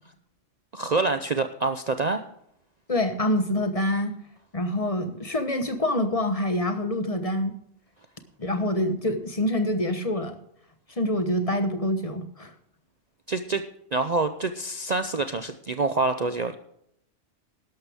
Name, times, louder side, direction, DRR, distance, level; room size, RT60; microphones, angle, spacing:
voice 1, 0.7-2.2 13.3-13.6 13.9-16.5, right 3 dB, 45° right, 8 dB, 0.7 m, -26 dB
voice 2, 2.9-4.1 4.5-7.5 8.4-10.4 11.0-12.5, left 1 dB, 30° left, 8 dB, 1.2 m, -26 dB
12.5 x 12.0 x 3.6 m, 0.72 s
omnidirectional pair, 1.2 m